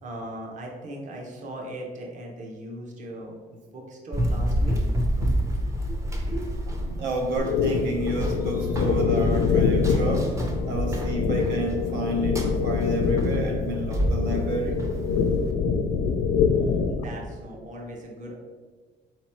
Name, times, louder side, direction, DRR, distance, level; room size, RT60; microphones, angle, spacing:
voice 1, 0.0-4.8 5.9-6.8 11.1-11.2 16.5-18.4, right 1 dB, 45° right, -1 dB, 0.8 m, -39 dB
Run, 4.1-15.5, equal, 15° right, 0.5 m, -29 dB
voice 2, 6.9-10.3 10.7-14.9, right 1 dB, 80° right, 1 dB, 0.7 m, -30 dB
sound 1, 7.4-17.0, left 5 dB, 85° left, 0.4 m, -25 dB
4.1 x 3.0 x 4.3 m, 1.4 s
cardioid pair, 160°, 18 cm